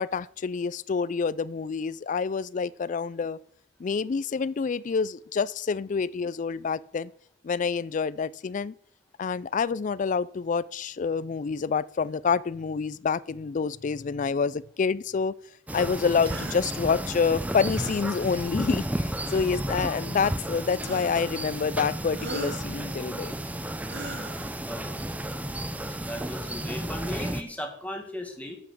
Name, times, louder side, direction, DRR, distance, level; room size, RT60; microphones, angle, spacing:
voice 1, 0.0-3.4 3.8-7.1 7.4-8.7 9.2-15.3 15.7-23.3, left 5 dB, 40° left, 0.4 m, -27 dB
sound 1, 15.7-27.4, right 1 dB, 10° right, 0.6 m, -33 dB
sound 2, 16.2-16.6 17.7-18.1 19.2-19.7 20.8-21.3 22.1-22.7 23.8-24.5, right 2 dB, 65° right, 2.5 m, -39 dB
voice 2, 24.6-25.0 25.7-28.6, left 1 dB, 10° left, 1.9 m, -37 dB
12.5 x 6.2 x 6.6 m
head